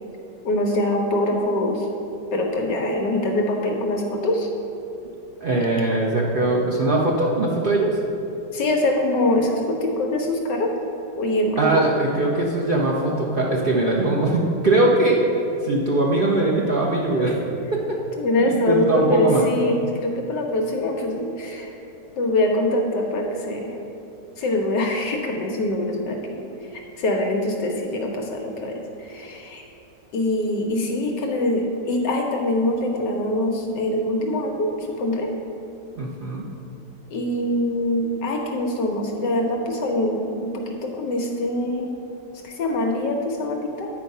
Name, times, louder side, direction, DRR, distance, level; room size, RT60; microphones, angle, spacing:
voice 1, 0.4-1.9 2.3-4.5 8.5-10.7 11.2-11.8 18.2-21.7 22.2-23.7 24.4-26.4 26.7-29.6 30.1-35.3 37.1-41.9 42.4-43.9, left 1 dB, 70° left, 1 dB, 1.4 m, -24 dB
voice 2, 5.4-8.0 11.6-15.2 15.6-17.4 17.7-18.0 18.4-19.5 36.0-36.4, right 2 dB, 85° right, -3 dB, 0.4 m, -21 dB
9.8 x 4.6 x 5.3 m, 2.8 s
omnidirectional pair, 2.0 m